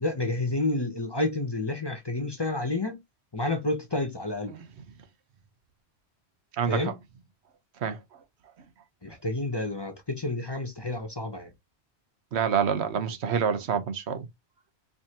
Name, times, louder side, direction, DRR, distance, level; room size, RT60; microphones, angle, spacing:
voice 1, 0.0-3.0 3.3-4.5 6.7-6.9 9.0-11.5, left 2 dB, 25° left, 0.7 m, -29 dB
voice 2, 6.6-6.9 7.8-8.0 12.3-14.3, right 7 dB, 80° right, 1.0 m, -27 dB
4.7 x 2.7 x 2.8 m
omnidirectional pair, 1.1 m